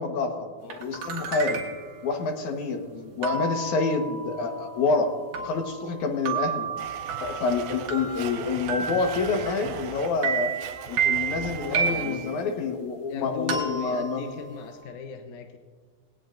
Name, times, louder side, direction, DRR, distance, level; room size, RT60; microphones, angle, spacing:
voice 1, 0.0-0.5 0.8-1.6 2.0-2.8 3.2-5.1 5.4-6.7 7.2-10.5 10.9-14.2, left 4 dB, 60° left, 4 dB, 2.3 m, -27 dB
sound 1, 0.7-2.0 3.2-9.9 10.2-12.4 13.5-14.8, right 6 dB, 60° right, 2.9 m, -32 dB
Domestic sounds home sounds, 6.8-12.4, right 8 dB, 85° right, 1.8 m, -39 dB
voice 2, 11.7-12.3 13.1-15.6, left 5 dB, 75° left, 5 dB, 1.7 m, -37 dB
20.0 x 18.0 x 2.6 m, 1.5 s
omnidirectional pair, 4.6 m